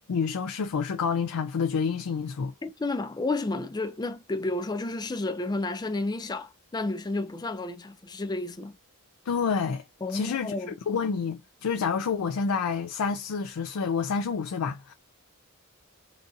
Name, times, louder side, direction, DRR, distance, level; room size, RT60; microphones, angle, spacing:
voice 1, 0.1-2.5 9.3-9.8 10.1-10.5 10.9-14.9, left 5 dB, 90° left, 0.4 m, -28 dB
voice 2, 2.6-8.8 10.0-10.8, left 2 dB, 20° left, 0.4 m, -31 dB
3.8 x 2.6 x 2.6 m
head